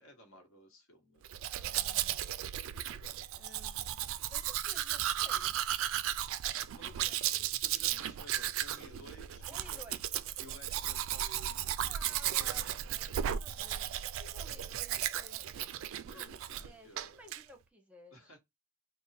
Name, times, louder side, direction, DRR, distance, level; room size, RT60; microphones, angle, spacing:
voice 1, 0.0-1.4 2.7-3.0 6.7-7.2 7.6-9.8 10.4-12.6 16.0-17.1 18.1-18.4, equal, 75° left, 1.2 m, -55 dB
Domestic sounds home sounds, 1.2-16.7 17.0-17.4, right 11 dB, 70° right, 0.3 m, -35 dB
voice 2, 1.5-2.4 3.3-4.0 4.3-5.6 7.0-7.5 7.9-8.1 9.5-10.1 11.8-15.6 16.1-18.4, right 1 dB, 5° right, 0.6 m, -56 dB
3.4 x 2.1 x 4.1 m
head